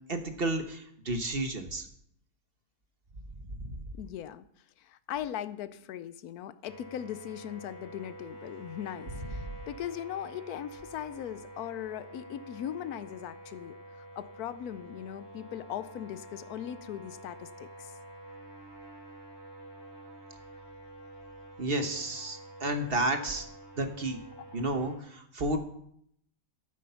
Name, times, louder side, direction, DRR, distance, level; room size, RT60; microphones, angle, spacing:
voice 1, 0.1-1.9 21.6-23.4 23.8-24.2 24.5-25.6, right 2 dB, 40° right, 6 dB, 1.2 m, -31 dB
voice 2, 3.9-4.5 4.8-17.9, left 11 dB, 70° left, 15 dB, 1.1 m, -39 dB
sound 1, 6.7-25.0, right 1 dB, 15° right, 2.6 m, -48 dB
13.5 x 8.6 x 5.7 m, 0.71 s
omnidirectional pair, 1.7 m